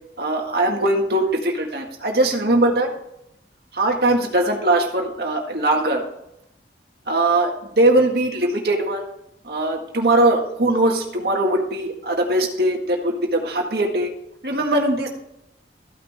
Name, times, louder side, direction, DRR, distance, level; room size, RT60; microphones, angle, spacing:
voice 1, 0.2-2.9 3.7-6.0 7.1-9.0 9.4-14.1 14.4-15.1, right 1 dB, 60° right, 1 dB, 1.8 m, -20 dB
14.5 x 6.0 x 3.6 m, 0.82 s
head